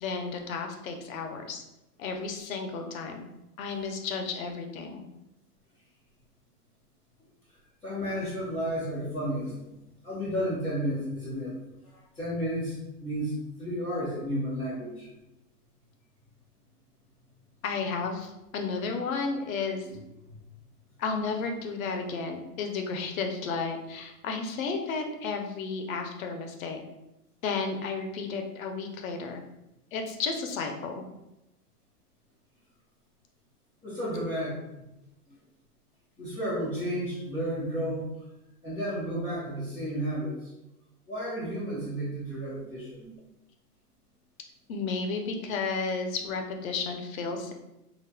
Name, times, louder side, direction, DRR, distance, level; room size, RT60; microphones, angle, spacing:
voice 1, 0.0-1.6 2.0-3.3 3.6-5.0 17.6-19.9 21.0-26.8 27.4-29.4 29.9-31.0 44.7-47.5, left 4 dB, 60° left, 4 dB, 0.7 m, -33 dB
voice 2, 7.8-9.5 10.0-15.1 19.8-20.0 20.3-20.4 33.8-34.8 36.2-38.1 38.6-40.5 41.1-43.1, equal, 5° left, -16 dB, 0.4 m, -32 dB
4.0 x 2.4 x 2.2 m, 0.92 s
hypercardioid pair, 125°, 47 cm